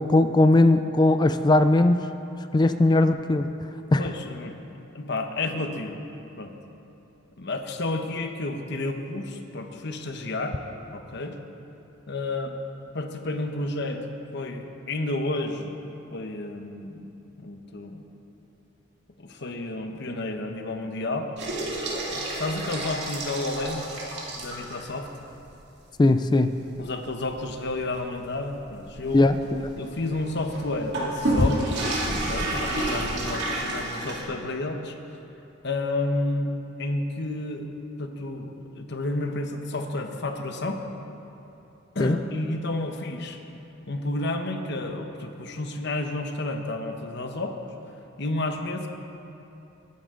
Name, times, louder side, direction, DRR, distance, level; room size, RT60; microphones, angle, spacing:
voice 1, 0.0-2.1 2.5-3.5 3.9-4.1 26.0-26.5 29.1-29.6 42.0-42.1, left 2 dB, 20° left, 10 dB, 0.3 m, -19 dB
voice 2, 4.0-6.0 6.4-6.5 7.4-10.6 10.9-11.4 12.1-12.5 12.9-14.0 14.3-15.8 16.1-17.1 17.4-18.0 19.2-21.3 22.1-24.0 24.3-25.1 26.8-29.3 29.8-31.9 32.3-34.9 35.6-36.5 36.8-37.7 38.0-40.8 41.9-43.4 43.9-47.6 48.2-48.9, left 2 dB, 55° left, 4 dB, 1.1 m, -31 dB
sound 1, 21.4-25.0 25.4-25.5 26.0-26.1 26.6-34.2, right 1 dB, 55° right, 2.6 m, -30 dB
20.5 x 10.0 x 3.8 m, 2.9 s
head